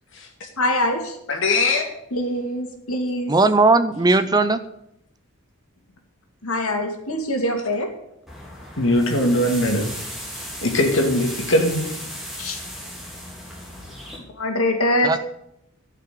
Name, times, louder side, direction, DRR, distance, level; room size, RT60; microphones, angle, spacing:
voice 1, 0.6-1.2 2.1-3.3 6.4-7.9 12.4-12.6 14.4-15.1, left 1 dB, 75° left, 4 dB, 2.2 m, -23 dB
voice 2, 1.3-1.8 8.8-9.8 10.6-11.8, left 1 dB, 60° left, 3 dB, 2.4 m, -20 dB
voice 3, 3.3-4.6 15.0-15.2, right 3 dB, 20° right, 12 dB, 0.6 m, -17 dB
sound 1, 8.3-14.2, equal, ahead, 3.1 m, -36 dB
13.0 x 5.8 x 9.2 m, 0.80 s
head